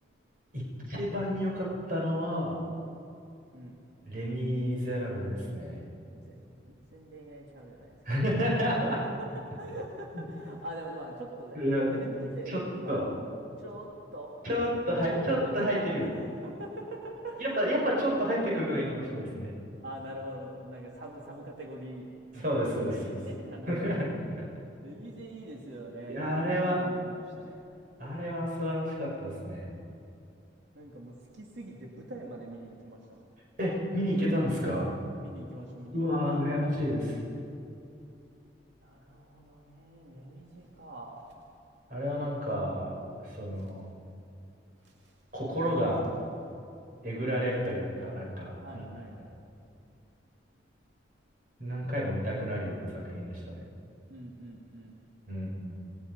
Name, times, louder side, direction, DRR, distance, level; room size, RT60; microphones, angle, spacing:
voice 1, 0.5-2.6 4.1-5.8 8.1-9.0 10.1-10.2 11.6-12.0 12.9-13.1 14.4-16.1 17.4-19.5 22.3-23.2 23.7-24.1 26.1-26.8 28.0-29.7 33.6-34.9 35.9-37.1 41.9-42.9 43.2-43.9 45.3-46.0 47.0-48.9 51.6-53.4 55.3-55.7, equal, 45° right, -3 dB, 5.4 m, -30 dB
voice 2, 3.5-3.8 6.2-8.2 8.9-9.3 9.6-13.0 13.6-18.1 18.7-18.9 19.8-22.1 22.9-24.0 24.8-27.9 30.7-33.4 35.2-36.6 38.7-41.6 43.4-43.7 44.7-45.3 48.6-49.2 49.7-49.9 54.1-55.0, right 1 dB, 80° right, -2 dB, 2.5 m, -44 dB
28.0 x 21.0 x 5.4 m, 2.6 s
head